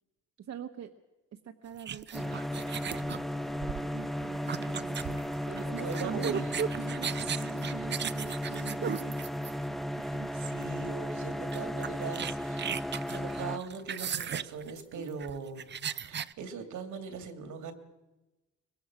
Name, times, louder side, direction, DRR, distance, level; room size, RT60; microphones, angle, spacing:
voice 1, 0.4-0.9 1.3-3.3 3.9-6.4 6.7-9.2 10.1-10.3 14.9-15.2, right 9 dB, 60° right, 6 dB, 1.2 m, -44 dB
sound 1, 1.8-9.8 10.6-10.8 11.1-11.2 11.5-16.3, right 8 dB, 35° right, 0.6 m, -36 dB
sound 2, 2.1-13.6, equal, ahead, 0.8 m, -35 dB
voice 2, 5.6-6.5 7.1-7.8 9.9-12.8 13.1-15.7 16.0-17.7, right 5 dB, 75° right, 7 dB, 2.6 m, -41 dB
23.5 x 21.0 x 6.1 m, 1.1 s
cardioid pair, 90°, 30 cm